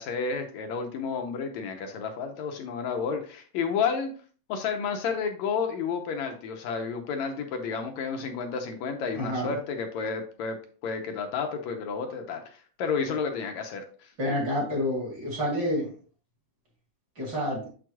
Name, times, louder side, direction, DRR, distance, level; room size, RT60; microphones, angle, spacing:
voice 1, 0.0-4.1 4.5-10.6 10.8-14.1, left 5 dB, 75° left, 4 dB, 1.9 m, -31 dB
voice 2, 9.1-9.5 14.2-15.9 17.2-17.7, equal, 35° right, -3 dB, 2.0 m, -28 dB
6.9 x 6.1 x 2.3 m, 0.42 s
omnidirectional pair, 3.6 m